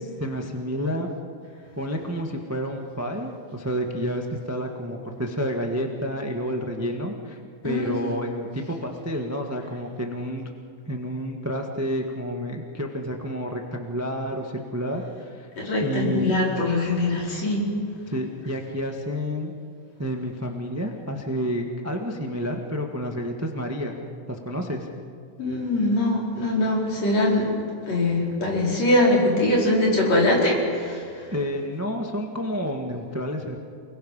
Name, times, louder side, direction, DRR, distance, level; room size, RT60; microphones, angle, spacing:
voice 1, 0.0-1.1 1.8-7.4 7.6-10.5 10.9-15.5 15.8-16.3 18.1-19.5 20.0-24.0 24.3-24.9 31.3-33.6, equal, 10° right, 2 dB, 0.7 m, -29 dB
voice 2, 7.6-8.0 15.6-17.7 25.4-27.5 27.9-31.3, left 1 dB, 60° left, -3 dB, 5.9 m, -22 dB
29.5 x 21.5 x 5.7 m, 2.2 s
omnidirectional pair, 3.4 m